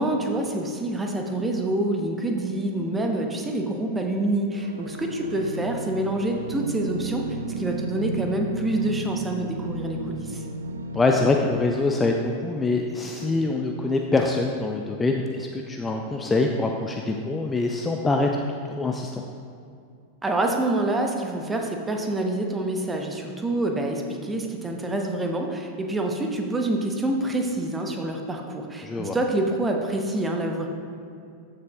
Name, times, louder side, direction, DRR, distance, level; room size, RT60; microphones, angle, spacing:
voice 1, 0.0-7.2 7.6-10.4 20.2-30.7, right 1 dB, 15° right, 2 dB, 0.9 m, -27 dB
sound 1, 4.5-11.5, right 2 dB, 70° right, 0.4 m, -34 dB
voice 2, 10.9-19.2 28.8-29.2, left 3 dB, 15° left, 2 dB, 0.5 m, -24 dB
13.5 x 6.5 x 2.4 m, 2.4 s
figure-of-eight pair, 90°, 0 cm